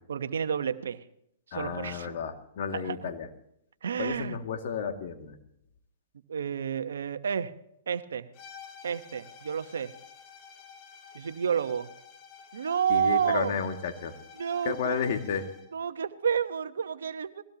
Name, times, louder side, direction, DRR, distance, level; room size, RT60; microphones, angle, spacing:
voice 1, 0.1-1.0 1.5-2.1 2.7-3.0 3.8-4.4 6.3-7.5 7.9-8.3 8.8-9.9 11.1-11.9 12.5-13.6 14.4-15.1 15.7-17.4, right 7 dB, 80° right, 11 dB, 1.0 m, -30 dB
voice 2, 1.5-3.3 4.0-5.4 12.9-14.1 14.6-15.5, left 6 dB, 60° left, 5 dB, 2.2 m, -32 dB
sound 1, 8.3-15.8, left 6 dB, 35° left, 1.8 m, -51 dB
21.0 x 16.5 x 2.9 m, 0.75 s
hypercardioid pair, 125°, 0 cm